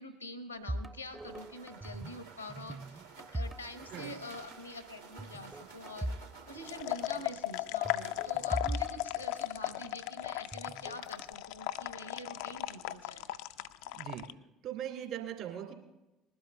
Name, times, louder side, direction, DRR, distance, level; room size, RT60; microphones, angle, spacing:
voice 1, 0.0-6.2 6.5-13.3, left 1 dB, 90° left, 10 dB, 1.0 m, -46 dB
sound 1, 0.5-9.3, right 5 dB, 80° right, 1.4 m, -54 dB
sound 2, 0.7-2.2 2.5-4.1 4.3-4.6 5.2-6.3 6.6-6.7 7.9-9.9 10.5-11.3, right 1 dB, 15° right, 0.4 m, -40 dB
sound 3, 6.6-14.3, left 15 dB, 60° left, 0.4 m, -36 dB
voice 2, 13.9-14.3 14.6-15.7, right 10 dB, 55° right, 3 dB, 2.5 m, -40 dB
20.0 x 12.0 x 3.3 m, 0.99 s
figure-of-eight pair, 60°, 0 cm